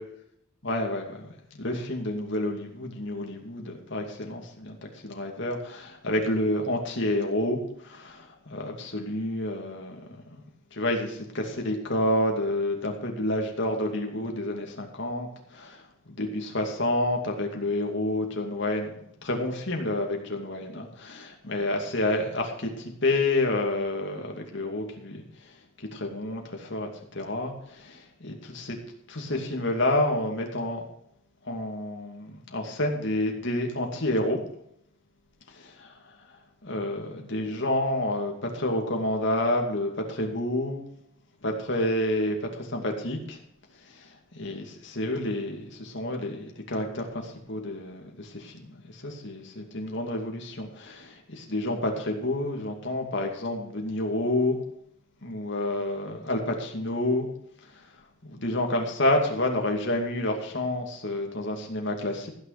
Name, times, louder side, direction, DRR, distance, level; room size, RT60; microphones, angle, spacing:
voice 1, 0.6-10.4 10.7-26.9 27.1-28.8 29.1-30.9 31.4-34.4 35.5-36.2 36.6-40.8 41.4-43.4 43.8-54.6 55.2-57.3 57.6-57.9 58.3-62.3, left 1 dB, 55° left, 2 dB, 2.5 m, -29 dB
15.5 x 6.6 x 5.8 m, 0.73 s
head